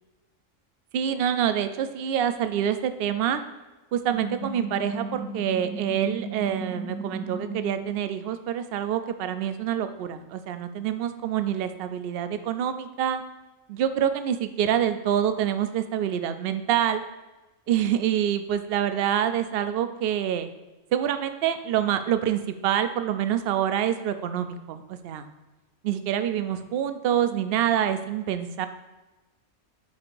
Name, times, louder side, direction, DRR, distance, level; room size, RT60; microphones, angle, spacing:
voice 1, 0.9-3.4 3.9-13.2 13.7-17.0 17.7-20.5 20.9-25.3 25.8-28.7, right 10 dB, 65° right, 10 dB, 0.6 m, -26 dB
sound 1, 4.1-8.0, right 3 dB, 60° left, 1.2 m, -35 dB
9.5 x 4.7 x 2.5 m, 1.1 s
omnidirectional pair, 1.4 m